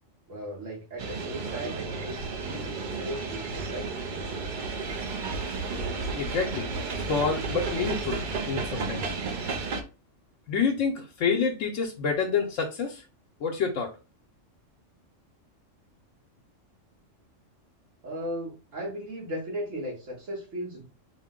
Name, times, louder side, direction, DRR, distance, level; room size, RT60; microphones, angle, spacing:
voice 1, 0.3-3.9 18.0-20.8, right 1 dB, 75° right, -3 dB, 1.7 m, -36 dB
sound 1, 1.0-9.8, right 4 dB, 55° right, 0.6 m, -32 dB
voice 2, 6.2-6.7 6.9-8.2 8.5-9.2 10.5-13.0 13.4-13.9, left 5 dB, 75° left, 2 dB, 1.0 m, -28 dB
4.4 x 2.1 x 3.6 m, 0.33 s
omnidirectional pair, 1.3 m